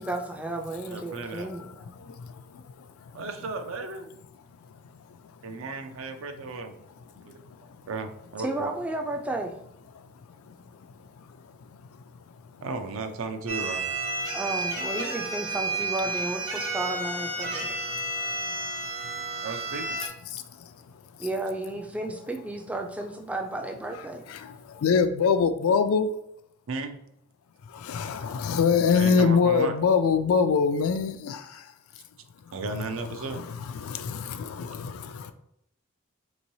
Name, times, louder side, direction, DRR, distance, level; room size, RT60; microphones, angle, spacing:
voice 1, 0.0-1.9 8.4-9.6 14.3-17.8 21.2-24.2, right 2 dB, 5° right, 0.3 m, -33 dB
voice 2, 0.8-1.5 3.1-4.1 5.4-6.7 7.2-7.4 7.9-8.7 12.6-13.8 19.4-20.0 26.7-27.0 28.9-29.8 32.5-33.4, right 3 dB, 70° right, 0.5 m, -35 dB
sound 1, 13.5-20.1, right 2 dB, 85° right, 1.0 m, -31 dB
voice 3, 24.8-26.1 27.9-31.4 33.3-33.4 34.0-34.7, left 5 dB, 80° left, 0.4 m, -22 dB
3.7 x 3.0 x 2.6 m
head